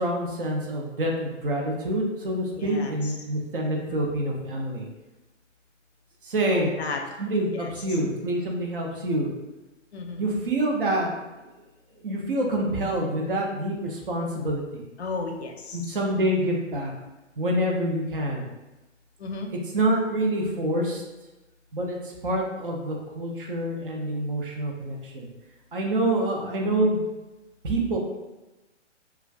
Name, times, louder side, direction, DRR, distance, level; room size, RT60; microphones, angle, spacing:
voice 1, 0.0-4.9 6.3-6.7 7.2-9.3 10.2-11.1 12.0-14.8 15.7-16.9 17.4-18.4 19.7-21.0 21.7-22.0 22.2-25.3 25.7-27.0 27.6-28.0, right 1 dB, 45° right, 0 dB, 0.7 m, -26 dB
voice 2, 2.6-2.9 3.9-4.0 6.5-7.0 7.5-7.7 9.9-10.2 15.0-15.8 19.2-19.5, left 4 dB, 60° left, 3 dB, 0.6 m, -33 dB
2.4 x 2.3 x 3.3 m, 1.1 s
figure-of-eight pair, 135°, 37 cm